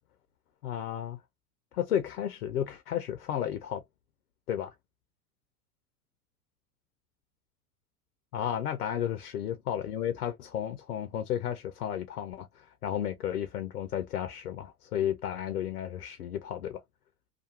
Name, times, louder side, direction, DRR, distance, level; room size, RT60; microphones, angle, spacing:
voice 1, 0.6-1.2 1.7-3.8 4.5-4.7 8.3-16.8, left 10 dB, 85° left, 0.6 m, -33 dB
2.9 x 2.2 x 2.7 m
hypercardioid pair, 90°, 44 cm